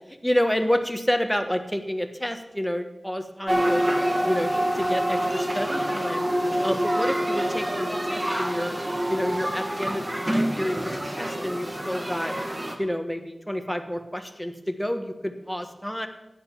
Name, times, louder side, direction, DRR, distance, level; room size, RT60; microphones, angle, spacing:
voice 1, 0.2-3.8 4.2-6.3 6.6-8.8 9.1-10.8 11.1-12.3 12.8-16.1, equal, ahead, 6 dB, 1.4 m, -29 dB
sound 1, 3.5-12.8, equal, 25° right, 1.7 m, -26 dB
12.0 x 9.1 x 7.2 m, 0.97 s
wide cardioid pair, 75°, 0 cm